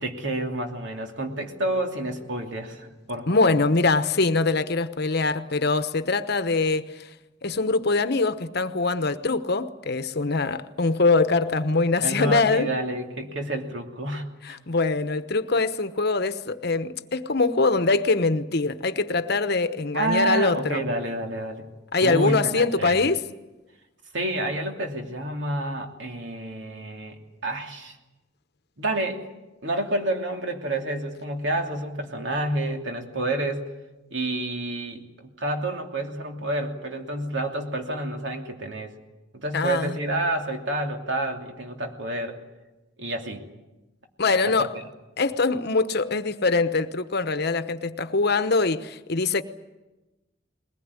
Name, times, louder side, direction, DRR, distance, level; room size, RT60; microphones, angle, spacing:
voice 1, 0.0-3.6 12.0-14.6 19.9-21.7 22.0-23.1 24.1-28.0 28.8-29.2 29.6-33.7 34.1-35.0 35.4-38.9 39.3-42.4 43.0-43.5 44.4-44.8, right 1 dB, 65° right, 2.9 m, -29 dB
voice 2, 3.3-7.1 7.4-12.7 14.4-20.8 21.9-23.2 39.5-40.0 44.2-44.7 45.2-49.4, left 3 dB, 55° left, 1.0 m, -23 dB
21.5 x 20.0 x 9.8 m
head